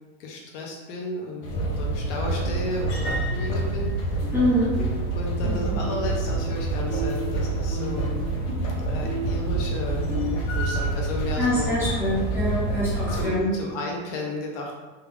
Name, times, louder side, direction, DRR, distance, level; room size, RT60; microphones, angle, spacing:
voice 1, 0.2-4.3 5.1-8.1 8.9-10.1 10.5-11.7 13.1-14.7, left 2 dB, 45° left, -1 dB, 0.6 m, -33 dB
sound 1, 1.4-13.3, right 2 dB, 65° left, 0.9 m, -27 dB
sound 2, 2.6-2.8 4.2-4.5 4.7-6.6 6.9-10.4, right 1 dB, 55° right, 1.0 m, -35 dB
voice 2, 4.3-4.8 11.4-13.5, equal, 5° right, -10 dB, 0.6 m, -24 dB
3.4 x 2.3 x 3.3 m, 1.2 s
supercardioid pair, 165°, 39 cm